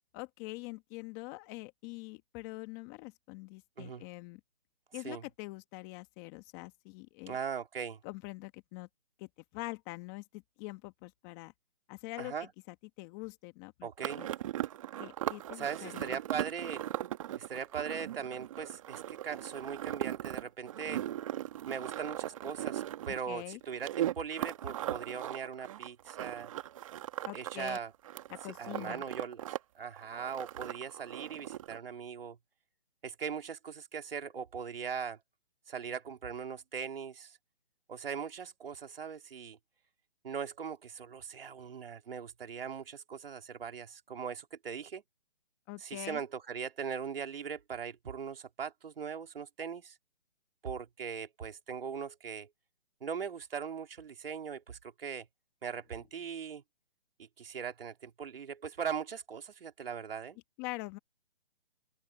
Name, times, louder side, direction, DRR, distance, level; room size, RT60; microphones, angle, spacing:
voice 1, 0.1-4.4 4.9-7.4 8.0-8.9 9.2-11.5 11.9-13.9 14.2-14.3 15.0-16.2 23.3-23.6 27.2-27.8 28.3-29.0 45.7-46.2 60.6-61.0, left 23 dB, 15° left, 1.4 m, -44 dB
voice 2, 7.3-8.0 12.2-12.5 13.8-14.2 15.6-16.8 17.4-21.0 21.7-26.5 27.3-27.9 28.6-29.4 29.7-32.4 33.0-35.2 35.7-37.4 37.9-39.6 40.2-45.0 45.8-49.9 50.6-52.5 53.0-55.3 55.6-56.6 57.4-60.4, right 7 dB, 55° right, 3.2 m, -40 dB
sound 1, 14.0-27.8 28.0-29.6 29.8-31.8, right 12 dB, 30° right, 1.7 m, -39 dB
open air
hypercardioid pair, 155°, 34 cm